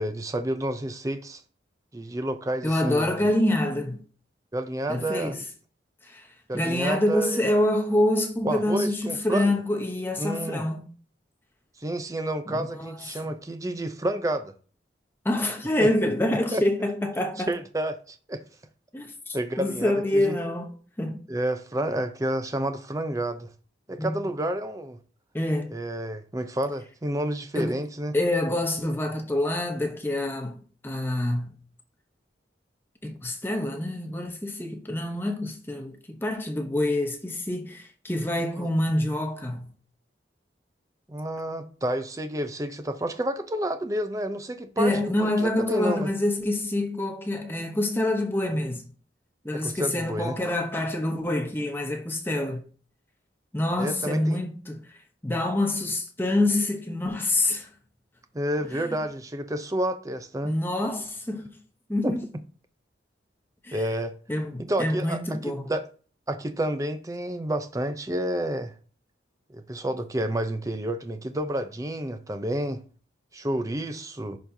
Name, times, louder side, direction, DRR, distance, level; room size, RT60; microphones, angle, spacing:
voice 1, 0.0-1.4 1.9-3.3 4.5-5.4 6.5-7.4 8.4-9.5 10.2-10.6 11.8-14.5 15.8-15.9 16.3-16.6 17.5-18.4 19.3-20.3 21.3-23.5 23.9-25.0 25.7-28.1 38.6-38.7 41.1-44.9 45.2-46.1 49.5-50.4 53.8-54.4 58.3-60.5 62.0-62.1 63.7-64.1 64.6-65.9 66.3-68.7 69.5-72.8 73.3-74.4, right 1 dB, 20° right, 0.5 m, -30 dB
voice 2, 2.6-4.0 4.9-5.4 6.0-6.3 6.5-10.8 12.5-13.3 15.2-17.5 18.9-20.7 21.0-21.2 24.0-24.1 25.3-25.8 27.6-27.8 28.1-31.6 33.0-39.7 44.8-48.8 49.4-52.6 53.5-54.8 55.2-57.7 58.7-58.8 60.4-61.5 61.9-62.3 63.6-63.8 64.3-65.7, left 1 dB, 10° left, 0.8 m, -26 dB
10.5 x 4.2 x 2.7 m
head